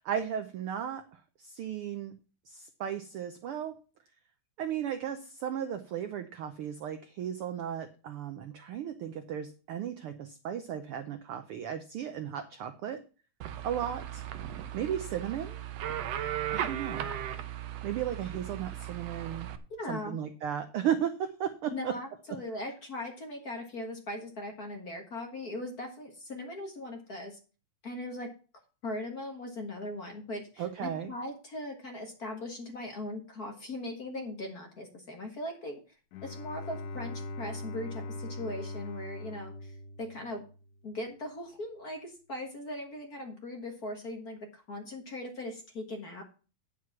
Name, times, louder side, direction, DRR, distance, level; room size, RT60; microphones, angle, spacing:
voice 1, 0.0-2.1 2.5-3.8 4.6-13.0 13.6-14.2 14.7-15.6 16.5-17.1 17.8-19.5 19.9-21.9 30.6-31.1, right 9 dB, 85° right, 9 dB, 1.2 m, -35 dB
sound 1, 13.4-19.6, right 11 dB, 70° right, 1.8 m, -37 dB
voice 2, 19.7-20.2 21.7-27.4 27.8-28.3 28.8-35.8 36.2-40.4 40.8-46.2, left 1 dB, 40° left, 3 dB, 1.5 m, -39 dB
Bowed string instrument, 36.1-40.8, left 2 dB, 90° left, 2.5 m, -41 dB
9.5 x 6.3 x 5.8 m, 0.35 s
omnidirectional pair, 3.4 m